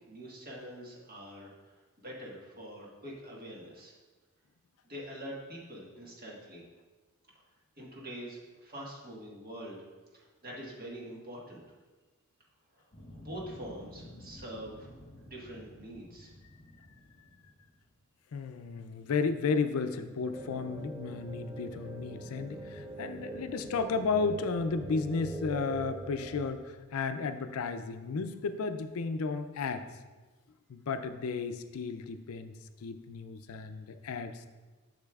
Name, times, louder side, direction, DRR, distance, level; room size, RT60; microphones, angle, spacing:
voice 1, 0.0-3.9 4.8-6.6 7.8-9.9 10.1-11.6 12.7-12.8 13.1-16.3, equal, 40° right, -3 dB, 1.5 m, -45 dB
sound 1, 12.9-17.9, left 1 dB, 35° left, 1.5 m, -51 dB
voice 2, 18.3-29.8 30.7-32.6 32.8-34.5, left 4 dB, 75° left, 9 dB, 0.4 m, -33 dB
sound 2, 20.3-26.5, right 2 dB, 15° right, 0.5 m, -42 dB
8.3 x 6.6 x 2.4 m, 1.3 s
head